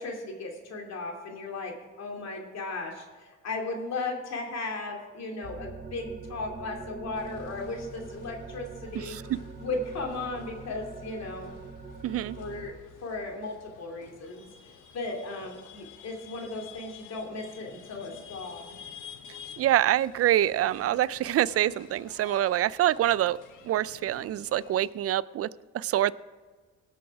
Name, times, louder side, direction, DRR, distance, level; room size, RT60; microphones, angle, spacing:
voice 1, 0.0-9.2 9.6-11.6 12.4-12.7 13.0-18.7, left 3 dB, 60° left, 1 dB, 2.7 m, -36 dB
sound 1, 5.4-12.7, right 3 dB, 30° right, 0.9 m, -43 dB
sound 2, 7.2-24.9, left 7 dB, 85° left, 1.2 m, -51 dB
voice 2, 12.0-12.4 19.6-23.4 23.6-25.5 25.7-26.1, right 13 dB, 50° right, 20 dB, 0.4 m, -25 dB
18.5 x 6.4 x 4.8 m, 1.4 s
cardioid pair, 90°, 30 cm